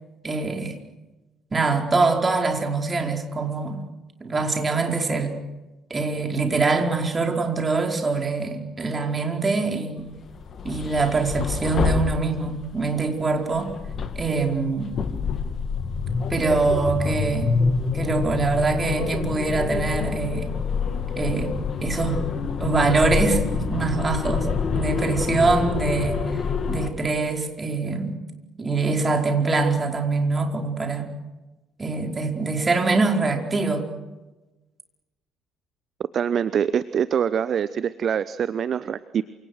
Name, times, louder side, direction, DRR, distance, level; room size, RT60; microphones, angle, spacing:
voice 1, 0.2-0.7 1.5-3.8 4.2-5.3 5.9-10.1 10.6-13.7 14.2-14.9 16.3-17.6 17.9-20.5 21.2-21.5 21.8-22.2 22.6-26.4 26.7-28.2 28.6-31.1 31.8-33.8, right 3 dB, 25° right, 3 dB, 4.9 m, -24 dB
sound 1, 10.2-12.8 13.5-26.9, left 5 dB, 45° left, 2.6 m, -27 dB
voice 2, 36.1-39.2, right 8 dB, 45° right, 15 dB, 0.9 m, -24 dB
28.0 x 26.5 x 6.7 m, 1.1 s
figure-of-eight pair, 50°, 0 cm